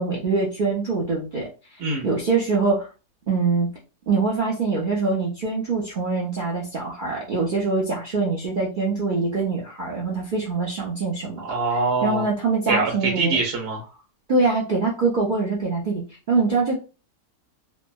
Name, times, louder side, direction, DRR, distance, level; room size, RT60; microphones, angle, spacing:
voice 1, 0.0-1.5 2.0-2.9 3.3-3.7 4.1-11.4 12.0-13.4 14.3-16.7, right 3 dB, 55° right, -4 dB, 0.5 m, -24 dB
voice 2, 11.4-12.2 12.7-13.8, right 3 dB, 80° right, 0 dB, 1.1 m, -24 dB
3.5 x 2.0 x 2.3 m, 0.31 s
omnidirectional pair, 1.7 m